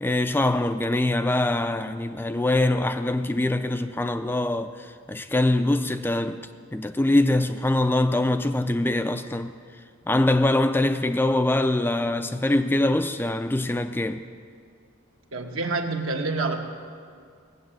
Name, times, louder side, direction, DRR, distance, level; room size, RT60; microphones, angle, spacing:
voice 1, 0.0-6.4 6.7-9.5 10.1-14.2, left 1 dB, 10° left, 0.3 m, -23 dB
voice 2, 15.3-16.6, right 3 dB, 80° right, 1.4 m, -27 dB
18.0 x 8.0 x 7.6 m
head